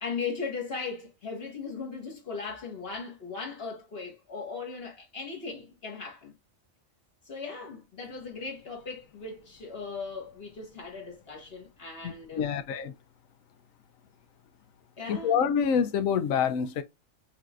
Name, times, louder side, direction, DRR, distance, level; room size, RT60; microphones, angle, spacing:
voice 1, 0.0-6.3 7.2-12.4 15.0-15.4, left 4 dB, 50° left, 1.7 m, -38 dB
voice 2, 12.0-12.9 15.1-16.8, left 7 dB, 90° left, 1.0 m, -27 dB
5.6 x 2.8 x 2.3 m
omnidirectional pair, 1.4 m